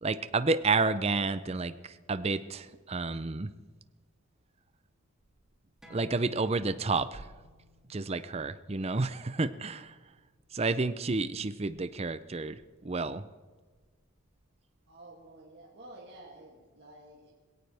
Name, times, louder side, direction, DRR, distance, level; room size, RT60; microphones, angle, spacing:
voice 1, 0.0-3.5 5.9-7.3 7.9-10.0 10.5-13.3, right 3 dB, 30° right, 13 dB, 0.5 m, -30 dB
sound 1, 5.8-11.0, equal, 5° right, 2.4 m, -59 dB
voice 2, 14.9-17.3, right 1 dB, 50° right, -5 dB, 2.5 m, -51 dB
21.0 x 17.5 x 3.5 m, 1.4 s
head